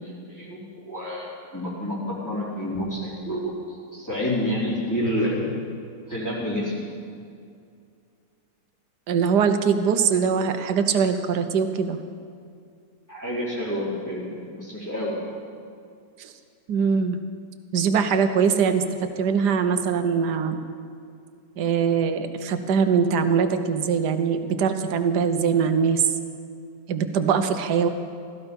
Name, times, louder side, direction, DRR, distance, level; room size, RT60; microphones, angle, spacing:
voice 1, 0.0-5.5 6.1-7.0 13.1-15.4, left 1 dB, 10° left, -7 dB, 3.9 m, -29 dB
voice 2, 9.1-12.0 16.2-16.3 16.7-17.2 17.7-18.8 19.2-20.6 21.6-26.0 26.9-27.9, right 6 dB, 85° right, 8 dB, 1.5 m, -22 dB
16.5 x 14.0 x 5.4 m, 2.4 s
omnidirectional pair, 1.7 m